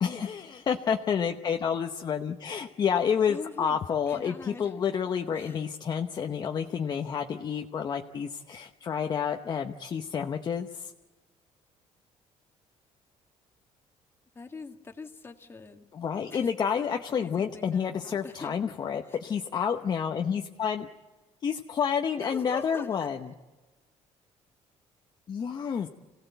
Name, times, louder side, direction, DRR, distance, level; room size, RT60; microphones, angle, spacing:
voice 1, 0.0-10.9 15.9-20.9 21.4-23.3 25.3-25.9, left 7 dB, 35° left, 4 dB, 1.0 m, -29 dB
voice 2, 3.3-3.8 4.1-4.7 5.3-5.6 14.4-15.9 16.3-16.5 16.8-18.6 19.1-19.2 22.2-22.9, left 4 dB, 20° left, 5 dB, 1.8 m, -43 dB
27.0 x 17.0 x 8.0 m, 1.2 s
cardioid pair, 140°, 12 cm